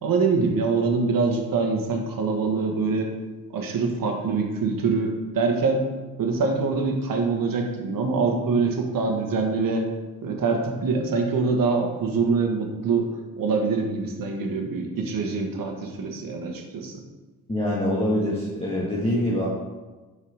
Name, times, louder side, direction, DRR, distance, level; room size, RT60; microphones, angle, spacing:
voice 1, 0.0-3.1 3.5-5.9 6.2-9.9 10.2-13.1 13.4-17.0, right 4 dB, 60° right, 2 dB, 1.3 m, -24 dB
voice 2, 17.5-19.5, left 1 dB, 15° left, -6 dB, 1.5 m, -24 dB
5.7 x 4.8 x 4.9 m, 1.2 s
cardioid pair, 80°, 38 cm